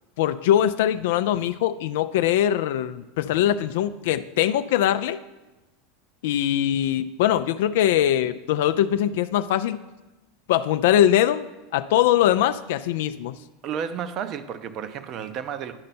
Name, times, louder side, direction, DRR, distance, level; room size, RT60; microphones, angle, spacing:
voice 1, 0.2-5.2 6.2-9.8 10.5-11.4 11.7-13.4, left 11 dB, 75° left, 12 dB, 0.3 m, -22 dB
voice 2, 13.6-15.8, right 8 dB, 45° right, 11 dB, 0.7 m, -32 dB
10.5 x 5.3 x 4.3 m, 1.1 s
hypercardioid pair, 105°, 0 cm